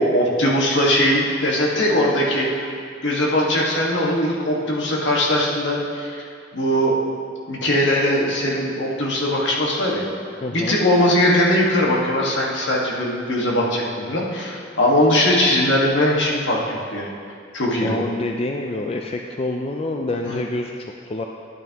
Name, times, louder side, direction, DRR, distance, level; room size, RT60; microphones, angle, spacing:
voice 1, 0.0-2.5 3.0-6.2 6.5-6.9 7.5-10.1 10.5-17.1 17.5-18.0 20.2-20.4, left 1 dB, 75° left, -3 dB, 1.7 m, -20 dB
voice 2, 10.4-10.7 17.8-21.2, left 2 dB, 30° left, 2 dB, 0.4 m, -27 dB
12.5 x 10.5 x 3.0 m, 2.2 s
head